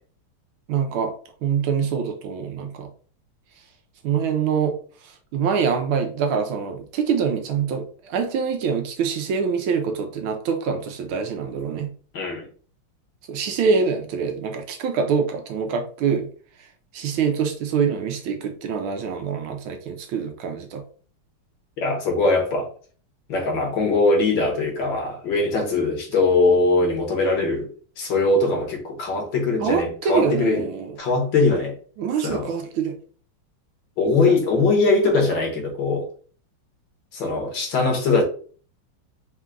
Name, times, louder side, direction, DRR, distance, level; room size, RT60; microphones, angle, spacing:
voice 1, 0.7-1.1 1.4-2.9 4.0-4.8 5.3-11.9 13.3-16.3 16.9-20.8 29.6-31.0 32.0-32.9 34.3-34.4, right 6 dB, 75° right, 1.4 m, -25 dB
voice 2, 12.1-12.5 21.8-22.7 23.3-27.7 28.0-30.7 31.0-31.7 32.2-32.5 34.0-36.1 37.1-38.2, left 3 dB, 60° left, 1.6 m, -21 dB
4.5 x 2.3 x 3.7 m
omnidirectional pair, 2.4 m